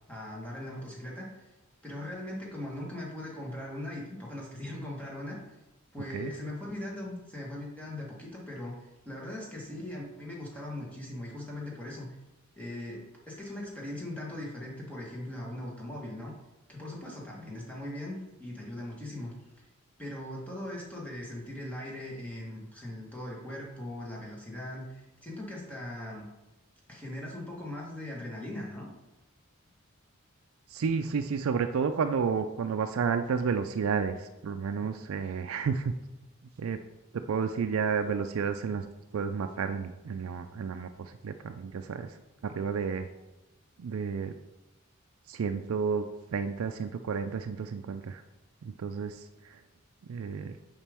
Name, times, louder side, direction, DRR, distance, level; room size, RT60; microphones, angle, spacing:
voice 1, 0.1-1.5 1.8-5.4 5.9-12.1 12.6-16.3 16.7-19.3 20.0-26.3 26.9-28.9 34.7-34.9, left 1 dB, 5° left, -4 dB, 1.3 m, -40 dB
voice 2, 30.7-35.9 36.6-36.8 37.1-38.8 39.1-42.2 42.4-43.1 43.8-44.3 45.3-46.1 46.3-48.2 48.6-49.6 50.1-50.6, right 6 dB, 80° right, 7 dB, 0.4 m, -31 dB
7.2 x 5.0 x 3.5 m, 1.0 s
head